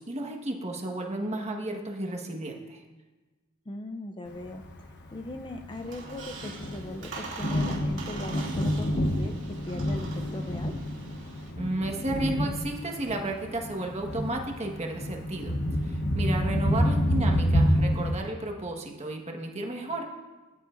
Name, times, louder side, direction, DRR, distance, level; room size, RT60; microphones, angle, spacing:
voice 1, 0.0-2.8 11.6-15.5 15.8-20.0, right 1 dB, 30° right, 2 dB, 1.5 m, -33 dB
voice 2, 3.7-10.7 16.6-16.9, left 1 dB, 20° left, 6 dB, 0.5 m, -39 dB
Thunder, 4.5-18.1, equal, 50° left, 1.0 m, -28 dB
Squeak, 5.7-11.5, right 3 dB, 60° right, 2.6 m, -42 dB
19.0 x 10.5 x 2.6 m, 1.2 s
head